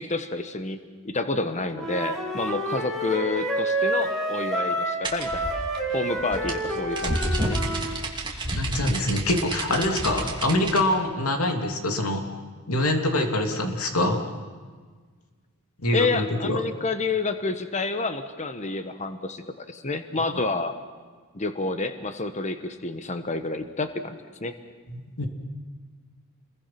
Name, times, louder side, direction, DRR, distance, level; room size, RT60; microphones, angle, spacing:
voice 1, 0.0-5.5 5.9-7.6 15.9-20.7 21.3-24.5, left 3 dB, 35° left, 8 dB, 1.2 m, -29 dB
Wind instrument woodwind instrument, 1.7-8.0, right 1 dB, ahead, 4.0 m, -28 dB
sound 1, 5.0-10.8, right 2 dB, 20° right, 3.0 m, -29 dB
voice 2, 8.4-12.2 12.7-14.2 15.8-16.6 20.2-20.5 24.9-25.3, left 1 dB, 80° left, 3 dB, 3.0 m, -25 dB
29.5 x 22.5 x 6.0 m, 1.5 s
head